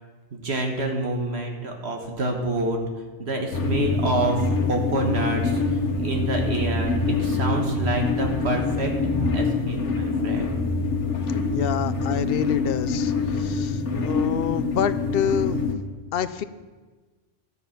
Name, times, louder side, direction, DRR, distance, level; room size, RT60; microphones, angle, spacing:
voice 1, 0.3-2.8 3.2-8.9 9.3-10.5, right 2 dB, 65° right, 2 dB, 1.6 m, -28 dB
sound 1, 3.5-15.7, left 3 dB, 80° left, 1.5 m, -25 dB
voice 2, 11.5-15.7 16.1-16.4, left 9 dB, 60° left, 14 dB, 0.7 m, -27 dB
13.0 x 7.3 x 5.8 m, 1.3 s
omnidirectional pair, 1.2 m